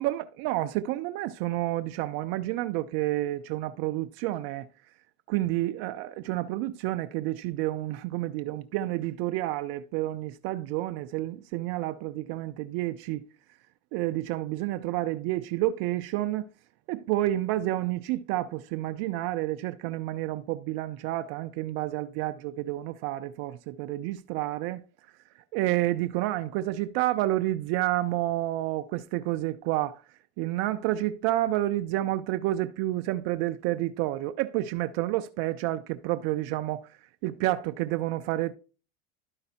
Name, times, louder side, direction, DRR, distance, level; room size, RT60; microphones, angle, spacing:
voice 1, 0.0-4.7 5.3-13.2 13.9-16.5 16.9-24.8 25.5-30.0 30.4-36.9 37.2-38.5, right 15 dB, 55° right, 0.5 m, -29 dB
11.5 x 5.2 x 2.8 m
supercardioid pair, 105°, 31 cm